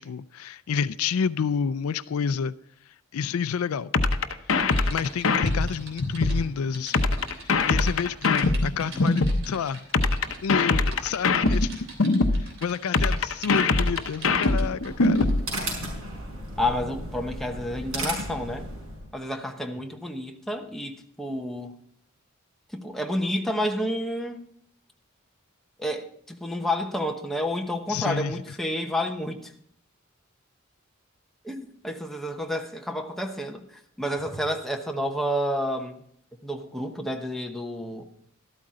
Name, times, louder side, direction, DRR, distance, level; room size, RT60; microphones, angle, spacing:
voice 1, 0.0-2.5 3.1-3.9 4.8-7.1 7.4-9.8 10.4-11.8 12.4-15.3 27.9-28.4, left 6 dB, 85° left, 0.4 m, -29 dB
sound 1, 3.9-6.4 6.9-9.4 9.9-12.4 12.9-15.4, left 3 dB, 65° left, 0.8 m, -22 dB
Typing, 4.7-15.4 16.0-16.2, right 3 dB, 65° right, 3.2 m, -45 dB
sound 2, 14.7-19.1, right 1 dB, 90° right, 5.4 m, -35 dB
voice 2, 16.6-18.7 19.1-21.8 22.7-24.4 25.8-29.5 31.4-36.0 36.4-38.0, equal, ahead, 1.0 m, -30 dB
13.0 x 13.0 x 3.8 m
head